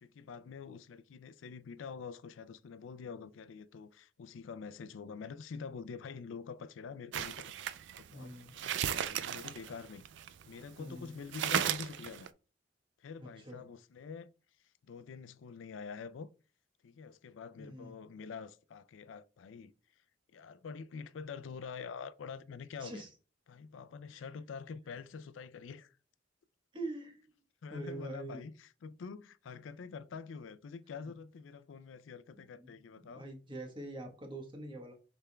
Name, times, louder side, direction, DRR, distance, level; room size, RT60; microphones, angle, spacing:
voice 1, 0.0-7.5 8.0-10.0 10.5-12.3 13.0-14.3 14.9-16.3 16.8-19.7 20.3-23.0 23.5-26.0 27.6-33.2, left 5 dB, 80° left, 0.4 m, -46 dB
sound 1, 7.1-10.6 11.0-11.1 11.3-12.3, right 9 dB, 65° right, 0.3 m, -35 dB
voice 2, 8.1-8.5 10.8-11.2 13.2-13.6 17.6-18.0 22.8-23.1 24.1-24.2 26.7-27.2 27.7-28.5 31.0-31.1 32.3-34.9, right 2 dB, 25° right, 1.1 m, -45 dB
6.6 x 3.5 x 2.2 m
head